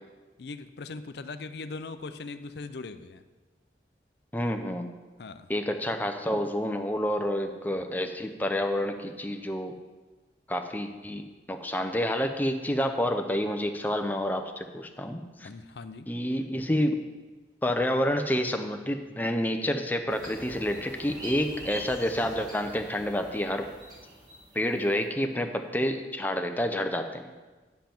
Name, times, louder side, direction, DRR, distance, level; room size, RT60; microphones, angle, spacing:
voice 1, 0.4-3.2 5.2-5.5 15.4-16.1, left 3 dB, 65° left, 11 dB, 0.5 m, -40 dB
voice 2, 4.3-4.9 5.5-9.7 10.5-11.2 11.5-15.5 16.1-17.0 17.6-23.6 24.5-27.3, equal, 10° left, 5 dB, 0.6 m, -29 dB
sound 1, 20.1-25.0, equal, 25° right, 1.5 m, -44 dB
9.2 x 7.4 x 4.4 m, 1.3 s
head